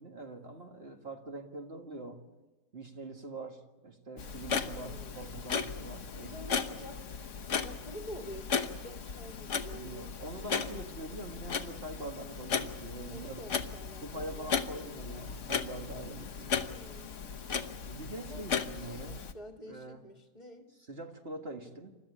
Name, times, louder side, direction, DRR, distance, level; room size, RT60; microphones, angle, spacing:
voice 1, 0.0-2.2 2.7-6.3 9.7-13.4 14.0-16.6 17.9-19.2 19.7-20.0 20.9-22.0, right 2 dB, 35° right, 3 dB, 2.0 m, -44 dB
Clock, 4.2-19.3, left 6 dB, 50° left, 1.3 m, -36 dB
voice 2, 4.7-5.3 6.2-7.1 7.4-10.1 13.1-14.9 16.5-17.2 18.2-18.5 18.8-20.7, equal, 25° left, 3 dB, 1.8 m, -48 dB
28.5 x 13.5 x 9.9 m, 1.1 s
omnidirectional pair, 1.9 m